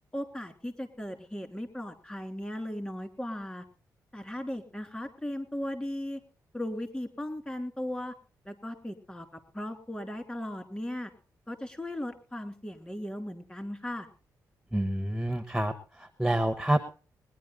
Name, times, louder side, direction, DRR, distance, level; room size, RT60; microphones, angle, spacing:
voice 1, 0.1-3.6 4.1-6.2 6.5-8.1 8.4-9.3 9.5-11.1 11.5-14.1, left 1 dB, 15° left, 7 dB, 3.0 m, -37 dB
voice 2, 14.7-15.7 16.0-16.8, right 1 dB, 5° right, 10 dB, 1.0 m, -27 dB
21.0 x 10.5 x 3.9 m, 0.36 s
cardioid pair, 75°, 7 cm